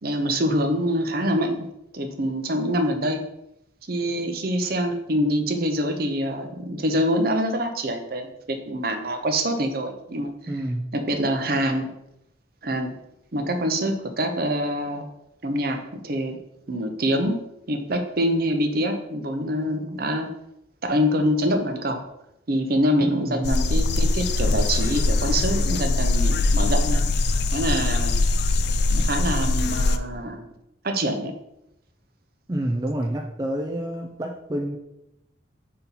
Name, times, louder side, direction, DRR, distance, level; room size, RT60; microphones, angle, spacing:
voice 1, 0.0-1.7 1.9-3.2 3.9-10.3 10.9-11.9 12.6-12.9 13.3-15.1 15.4-16.4 16.7-17.4 17.7-20.3 20.8-22.0 22.5-27.0 27.5-28.1 28.9-30.5 30.8-31.3, equal, 50° right, 5 dB, 0.7 m, -25 dB
voice 2, 10.5-10.9 23.0-23.5 32.5-34.8, right 1 dB, 20° right, 1 dB, 0.4 m, -28 dB
sound 1, 23.4-30.0, left 2 dB, 55° left, 0.3 m, -22 dB
4.3 x 4.1 x 5.4 m, 0.84 s
head